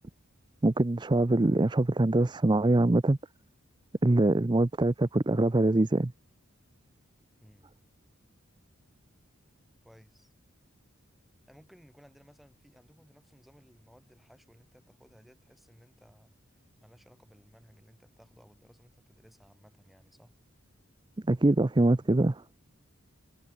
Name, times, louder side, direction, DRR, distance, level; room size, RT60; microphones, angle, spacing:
voice 1, 0.6-3.2 4.0-6.1 21.3-22.4, right 2 dB, 20° right, 0.5 m, -24 dB
voice 2, 9.8-10.3 11.5-16.3 16.8-20.3, equal, ahead, 7.5 m, -59 dB
head